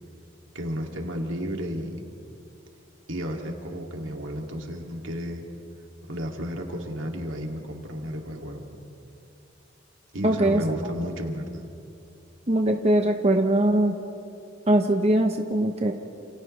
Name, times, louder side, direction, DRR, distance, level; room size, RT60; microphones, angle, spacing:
voice 1, 0.5-2.0 3.1-5.4 6.1-8.7 10.1-11.6, equal, 75° right, 1 dB, 2.5 m, -32 dB
voice 2, 10.2-10.6 12.5-13.9 14.7-15.9, right 1 dB, 30° right, 3 dB, 0.9 m, -21 dB
29.0 x 28.0 x 3.3 m, 2.6 s
head